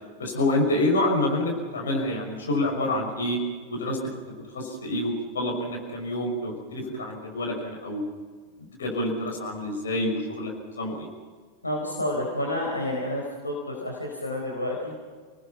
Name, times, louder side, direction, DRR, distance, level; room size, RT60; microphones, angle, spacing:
voice 1, 0.2-3.4 3.7-4.0 4.5-8.0 8.6-11.1, left 1 dB, 65° left, 1 dB, 5.9 m, -27 dB
voice 2, 11.6-14.9, left 1 dB, 85° left, -2 dB, 4.4 m, -29 dB
28.5 x 19.5 x 5.8 m, 1.5 s
figure-of-eight pair, 90°, 0 cm